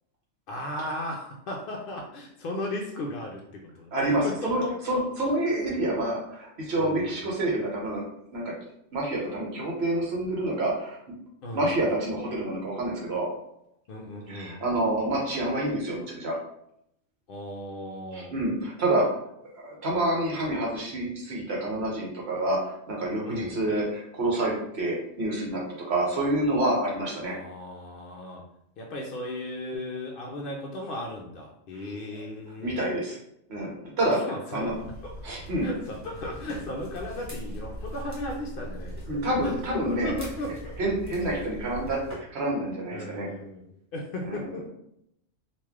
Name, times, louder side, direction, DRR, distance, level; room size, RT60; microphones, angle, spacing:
voice 1, 0.5-5.3 6.8-7.2 11.4-11.7 13.9-14.6 17.3-18.3 23.2-23.6 27.2-28.4 28.8-32.7 34.1-34.8 35.0-35.3 35.6-39.1 39.4-39.6 39.9-40.7 42.9-43.7 43.9-44.7, left 1 dB, 65° left, 0 dB, 0.5 m, -36 dB
voice 2, 3.9-8.0 8.3-8.5 8.9-11.0 11.5-13.3 14.3-16.4 18.1-19.0 19.5-25.6 25.9-27.4 31.7-31.8 32.6-33.2 33.5-34.2 34.5-34.8 35.2-35.7 39.1-40.1 40.8-43.3 44.2-44.6, right 1 dB, 55° right, -3 dB, 1.1 m, -28 dB
sound 1, 34.7-42.2, right 1 dB, 15° left, 1.1 m, -40 dB
3.1 x 2.5 x 3.5 m, 0.76 s
omnidirectional pair, 1.4 m